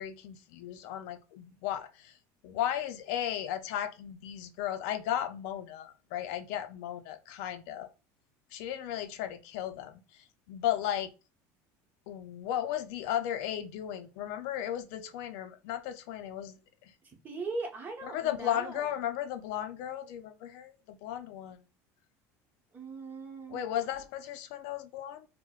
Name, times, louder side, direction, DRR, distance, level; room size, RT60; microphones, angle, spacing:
voice 1, 0.0-2.2 2.4-7.9 8.5-11.1 12.1-16.6 16.8-16.9 18.0-21.6 23.5-25.3, left 11 dB, 75° left, 0.5 m, -35 dB
voice 2, 17.2-19.0 22.7-23.6, right 3 dB, 25° right, 0.9 m, -39 dB
4.5 x 2.1 x 2.3 m
cardioid pair, 150°, 8 cm